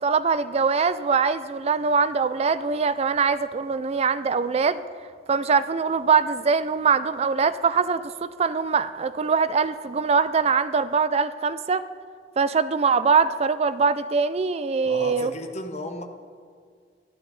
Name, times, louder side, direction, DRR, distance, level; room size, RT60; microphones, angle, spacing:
voice 1, 0.0-4.8 5.3-11.8 12.4-15.3, right 5 dB, 35° right, 14 dB, 0.4 m, -22 dB
voice 2, 14.8-16.0, left 1 dB, 40° left, 5 dB, 1.0 m, -34 dB
12.0 x 11.0 x 4.0 m, 2.1 s
head